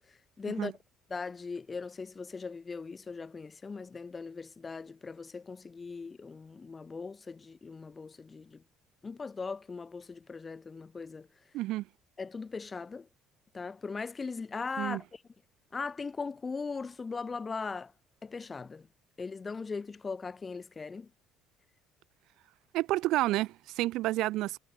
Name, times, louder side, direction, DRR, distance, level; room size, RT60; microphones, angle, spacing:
voice 1, 0.4-0.7 1.1-8.6 9.0-11.3 12.2-13.1 13.5-15.1 15.7-17.9 18.2-18.9 19.2-21.1, left 4 dB, 30° left, 1.7 m, -39 dB
voice 2, 11.5-11.9 14.8-15.0 22.7-24.6, right 17 dB, 70° right, 1.2 m, -30 dB
supercardioid pair, 70°, 0 cm